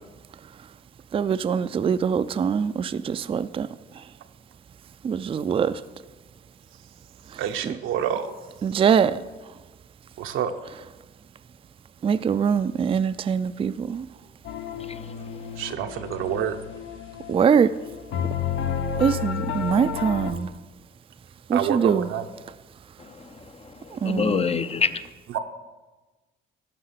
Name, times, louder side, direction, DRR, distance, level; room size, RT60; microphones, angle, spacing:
voice 1, 1.1-3.7 3.9-4.1 5.0-5.8 7.3-7.8 8.6-9.2 12.0-14.1 17.3-17.7 19.0-20.5 21.5-22.1 23.9-24.5, right 7 dB, 30° right, 0.3 m, -23 dB
voice 2, 7.4-8.3 10.2-10.5 15.6-16.6 21.5-22.3 25.3-25.4, right 9 dB, 85° right, 0.8 m, -27 dB
sound 1, 14.4-20.3, left 8 dB, 75° left, 0.8 m, -31 dB
voice 3, 14.8-15.4 23.0-25.0, left 6 dB, 30° left, 0.5 m, -28 dB
12.0 x 5.7 x 5.8 m
cardioid pair, 90°, 20 cm